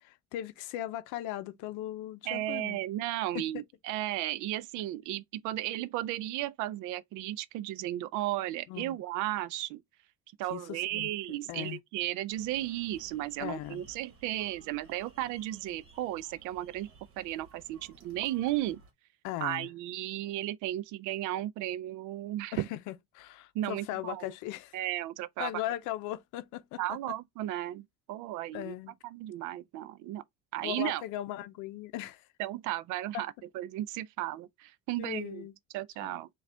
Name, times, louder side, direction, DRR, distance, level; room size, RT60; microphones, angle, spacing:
voice 1, 0.0-2.8 3.3-3.4 8.7-9.0 10.5-11.8 13.4-13.8 19.2-19.7 22.5-24.8 25.4-27.2 28.5-28.9 30.6-32.2 33.1-33.2 35.0-35.5 36.0-36.2, left 13 dB, 80° left, 0.6 m, -38 dB
voice 2, 2.3-9.8 10.4-16.9 17.2-18.8 19.4-22.7 23.5-24.2 24.7-25.5 26.8-28.7 29.0-30.2 30.5-31.0 32.4-35.5 35.7-36.3, right 14 dB, 75° right, 0.5 m, -34 dB
sound 1, 12.3-18.9, right 4 dB, 45° right, 1.4 m, -57 dB
4.8 x 2.4 x 3.4 m
cardioid pair, 135°, 30 cm